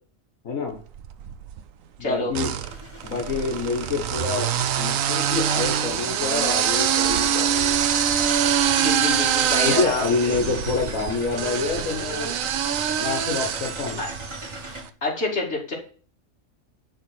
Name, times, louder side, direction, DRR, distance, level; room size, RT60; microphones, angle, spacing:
voice 1, 0.4-0.8 2.0-2.5 3.0-4.5 4.8-7.8 9.7-12.3 13.0-14.0, left 4 dB, 85° left, 1 dB, 1.7 m, -27 dB
sound 1, 0.9-1.6 2.3-14.6, right 9 dB, 80° right, 1.0 m, -24 dB
voice 2, 2.0-2.3 8.8-10.4 14.0-14.1 15.0-15.7, left 3 dB, 55° left, -2 dB, 2.7 m, -27 dB
sound 2, 2.6-14.8, right 1 dB, 20° right, 1.7 m, -40 dB
11.0 x 3.6 x 6.4 m, 0.42 s
omnidirectional pair, 1.4 m